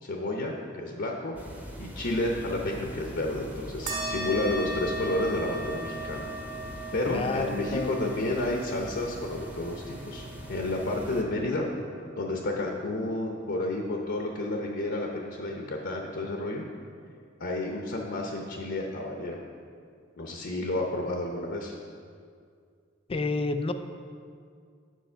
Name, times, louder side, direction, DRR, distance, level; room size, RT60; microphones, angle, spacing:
voice 1, 0.0-1.4 1.8-6.3 6.9-11.7 12.2-16.6 17.4-19.4 20.2-21.8, left 2 dB, 60° left, 1 dB, 0.8 m, -31 dB
sound 1, 1.4-11.2, equal, 10° right, 0.9 m, -42 dB
sound 2, 3.9-12.8, right 1 dB, 40° right, 2.1 m, -38 dB
voice 2, 7.1-8.0 23.1-23.7, left 3 dB, 30° left, 8 dB, 0.4 m, -29 dB
9.2 x 6.3 x 4.5 m, 2.2 s
head